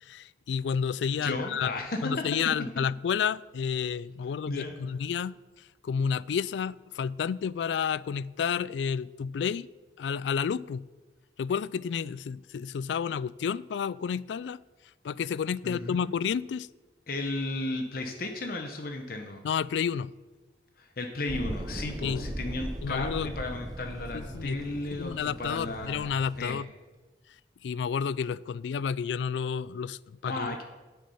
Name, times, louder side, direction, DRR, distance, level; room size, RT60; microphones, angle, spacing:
voice 1, 0.0-1.7 2.0-5.4 5.8-9.7 10.0-10.8 11.4-14.6 15.0-16.7 19.4-20.1 22.0-22.3 22.8-23.3 24.1-24.6 24.9-26.7 27.6-30.6, left 7 dB, 80° left, 0.3 m, -30 dB
voice 2, 1.2-2.4 4.5-4.7 15.6-16.1 17.1-19.4 20.8-26.6 30.2-30.6, left 2 dB, 55° left, 0.9 m, -34 dB
sound 1, 21.3-26.5, right 1 dB, 20° right, 0.6 m, -38 dB
9.3 x 8.5 x 5.5 m
head